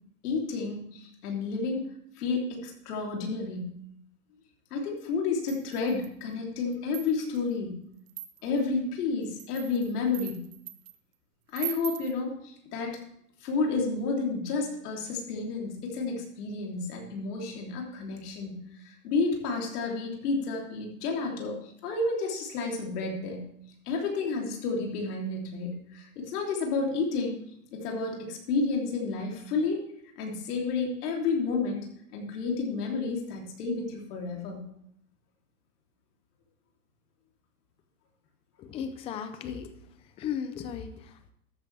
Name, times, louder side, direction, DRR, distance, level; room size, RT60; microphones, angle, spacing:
voice 1, 0.2-1.9 2.2-3.7 4.7-7.8 8.4-10.5 11.5-13.0 13.4-23.5 23.9-27.4 27.7-29.8 30.2-34.7, left 4 dB, 70° left, 0 dB, 3.2 m, -31 dB
sound 1, 5.5-6.2 6.7-7.4 8.1-8.6 9.2-11.0 11.5-12.2, right 14 dB, 55° right, 0.9 m, -40 dB
voice 2, 38.6-39.7 40.2-41.3, left 8 dB, 15° left, 10 dB, 0.4 m, -36 dB
13.5 x 10.0 x 3.4 m, 0.69 s
supercardioid pair, 140°, 48 cm